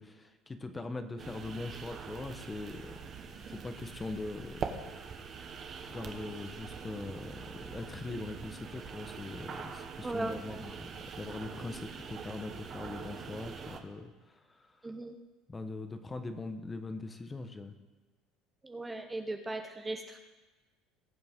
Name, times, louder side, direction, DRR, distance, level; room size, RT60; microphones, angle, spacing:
voice 1, 0.0-2.9 3.5-4.7 5.9-10.9 11.2-14.8 15.5-17.7, left 3 dB, 20° left, 8 dB, 1.1 m, -41 dB
sound 1, 1.2-13.8, right 6 dB, 40° right, 1.2 m, -44 dB
voice 2, 10.0-10.6 14.8-15.2 18.6-20.2, right 2 dB, 15° right, 5 dB, 0.8 m, -38 dB
20.0 x 7.6 x 3.7 m, 1.2 s
supercardioid pair, 110°, 0 cm